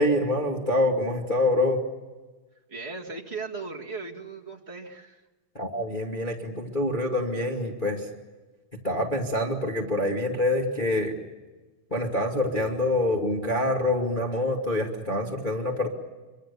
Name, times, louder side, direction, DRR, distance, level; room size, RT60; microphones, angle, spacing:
voice 1, 0.0-1.8 5.5-8.1 8.8-11.2 11.9-15.9, left 1 dB, 15° left, 0 dB, 1.8 m, -26 dB
voice 2, 2.7-5.2, right 4 dB, 30° right, -1 dB, 1.2 m, -37 dB
26.0 x 25.5 x 7.0 m, 1.2 s
omnidirectional pair, 4.4 m